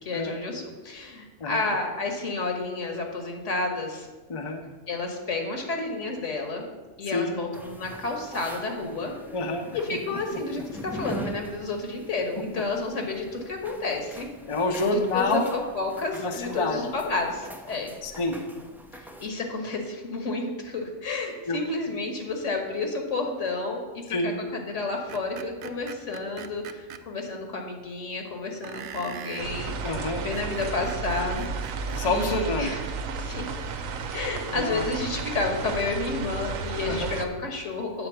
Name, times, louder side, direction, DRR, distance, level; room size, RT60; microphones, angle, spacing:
voice 1, 0.0-4.1 4.9-6.7 7.0-9.1 9.7-14.3 14.9-17.9 19.0-31.5 32.0-32.8 33.2-33.6 34.1-38.1, left 3 dB, 70° left, 2 dB, 1.7 m, -31 dB
voice 2, 4.3-4.6 7.1-7.3 9.3-9.7 10.1-10.6 14.5-15.4 16.2-16.9 18.0-18.4 21.5-21.6 24.1-24.3 29.8-30.2 31.9-32.7 34.5-34.9 36.9-37.1, left 2 dB, 30° left, 3 dB, 0.7 m, -27 dB
sound 1, 7.5-19.3, right 1 dB, 5° right, 0.4 m, -43 dB
Screech, 25.1-27.0 28.6-29.5 30.1-32.3, right 7 dB, 65° right, 0.5 m, -41 dB
sound 2, 29.4-37.3, right 5 dB, 85° right, 1.1 m, -33 dB
8.8 x 4.5 x 7.0 m, 1.3 s
omnidirectional pair, 1.3 m